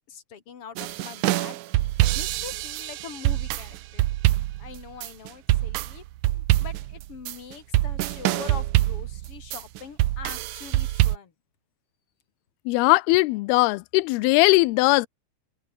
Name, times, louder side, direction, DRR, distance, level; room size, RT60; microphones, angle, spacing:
voice 1, 0.1-4.0 4.6-6.0 6.3-11.3, left 7 dB, 40° left, 2.8 m, -43 dB
sound 1, 0.8-11.2, right 16 dB, 75° right, 1.9 m, -25 dB
voice 2, 12.7-15.1, left 22 dB, 85° left, 2.6 m, -19 dB
open air
omnidirectional pair, 4.4 m